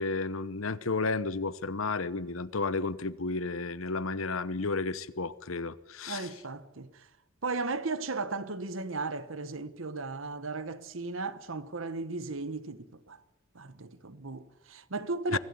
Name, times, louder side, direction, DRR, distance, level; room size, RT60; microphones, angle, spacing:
voice 1, 0.0-6.3 15.3-15.4, left 3 dB, 85° left, 1.0 m, -32 dB
voice 2, 6.1-7.1 7.4-13.2 13.5-15.4, right 3 dB, 75° right, 1.2 m, -36 dB
24.5 x 16.5 x 9.6 m
head